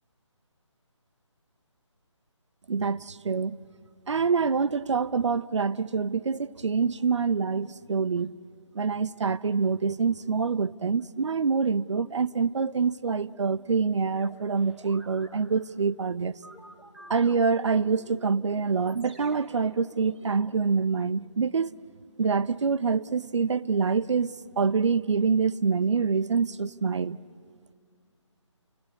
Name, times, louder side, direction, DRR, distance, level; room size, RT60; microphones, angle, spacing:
voice 1, 2.7-3.6 4.1-8.3 8.7-16.4 17.1-21.7 22.2-27.2, right 5 dB, 65° right, 0.7 m, -26 dB
sound 1, 14.2-15.3 16.4-20.8, right 1 dB, 5° right, 1.0 m, -51 dB
29.5 x 19.5 x 8.4 m
figure-of-eight pair, 160°, 16 cm